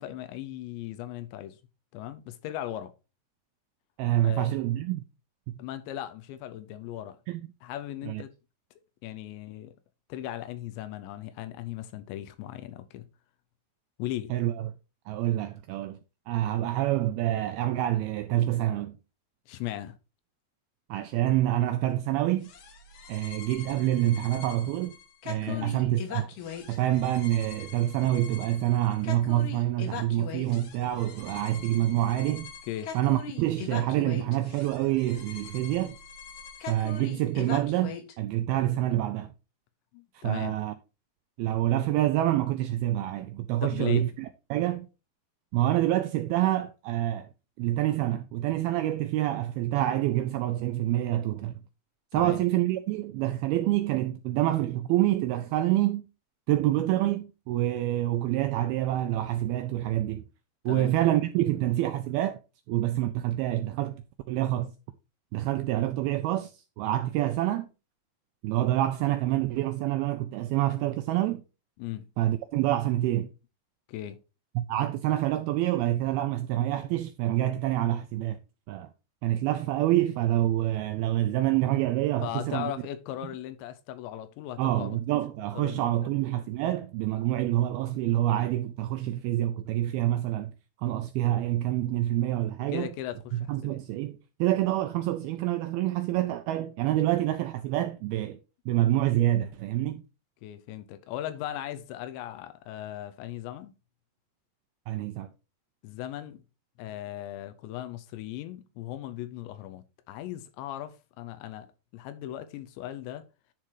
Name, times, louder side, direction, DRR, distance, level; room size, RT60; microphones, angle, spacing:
voice 1, 0.0-1.6 1.9-2.9 4.2-4.6 5.6-7.2 7.6-8.3 9.0-9.7 10.1-13.1 14.0-14.3 19.5-20.0 25.5-25.7 32.7-32.9 39.9-40.6 43.6-44.0 52.1-52.4 60.7-60.9 71.8-72.1 73.9-74.2 82.2-85.2 85.6-86.1 92.7-93.8 97.0-97.1 100.4-103.7 105.8-106.4 106.8-113.3, left 13 dB, 85° left, 3.0 m, -38 dB
voice 2, 4.0-5.1 7.3-7.5 8.1-8.2 14.3-14.7 15.1-16.0 16.3-19.0 20.9-22.5 23.1-24.9 25.3-26.3 26.7-32.5 32.9-36.0 36.7-39.3 40.1-40.7 41.4-44.9 45.5-47.3 47.6-51.6 52.1-56.1 56.5-60.2 60.7-62.4 62.7-64.0 64.3-64.7 65.3-67.7 68.4-71.4 72.2-73.3 74.6-78.4 78.7-78.9 79.2-82.7 84.6-90.5 90.8-92.9 93.3-98.4 98.7-100.0 104.9-105.3, right 14 dB, 85° right, 2.2 m, -27 dB
sound 1, 22.4-38.1, left 6 dB, 65° left, 2.0 m, -42 dB
10.5 x 3.8 x 4.6 m
omnidirectional pair, 5.0 m